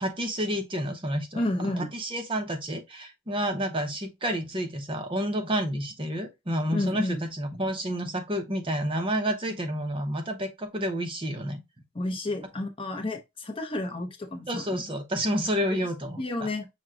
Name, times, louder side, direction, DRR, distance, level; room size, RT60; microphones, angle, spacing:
voice 1, 0.0-11.6 14.5-16.5, equal, 25° right, 0.8 m, -30 dB
voice 2, 1.4-1.9 6.7-7.2 7.5-7.6 11.9-14.8 16.2-16.7, left 1 dB, 25° left, 0.7 m, -31 dB
6.0 x 2.2 x 3.8 m
head